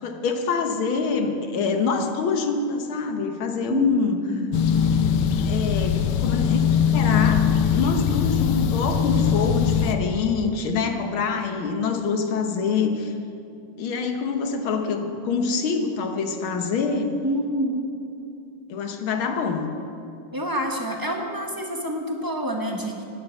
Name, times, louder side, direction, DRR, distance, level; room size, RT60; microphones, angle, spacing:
voice 1, 0.0-4.2 5.5-6.6 6.9-13.1 13.8-17.1 18.7-19.8, left 5 dB, 70° left, 5 dB, 1.9 m, -25 dB
voice 2, 3.7-4.6 17.2-17.9 20.3-23.0, equal, 15° right, 1 dB, 0.7 m, -27 dB
sound 1, 4.5-10.0, left 7 dB, 90° left, 1.7 m, -21 dB
11.5 x 10.0 x 8.2 m, 2.7 s
omnidirectional pair, 2.4 m